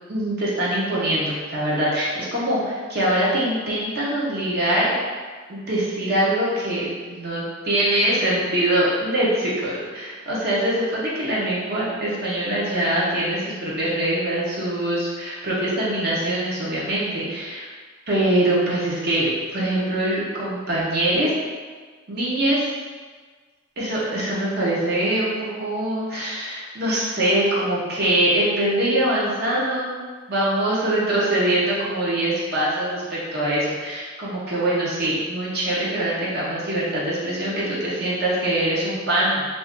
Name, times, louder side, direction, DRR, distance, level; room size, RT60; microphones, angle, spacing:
voice 1, 0.1-4.9 5.5-17.7 18.1-21.3 22.1-22.7 23.8-30.0 30.3-39.5, right 1 dB, 55° right, -6 dB, 0.8 m, -23 dB
2.6 x 2.3 x 3.5 m, 1.5 s
head